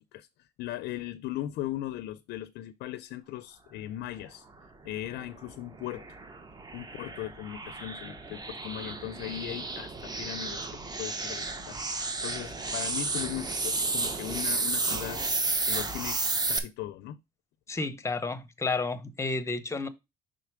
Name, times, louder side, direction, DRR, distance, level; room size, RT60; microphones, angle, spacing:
voice 1, 0.0-4.4 4.8-6.1 6.7-17.2, left 14 dB, 80° left, 0.5 m, -38 dB
sound 1, 5.0-16.6, right 3 dB, 25° right, 1.0 m, -32 dB
voice 2, 17.7-19.9, left 3 dB, 15° left, 0.8 m, -31 dB
5.8 x 3.8 x 4.8 m
cardioid pair, 110°, 17 cm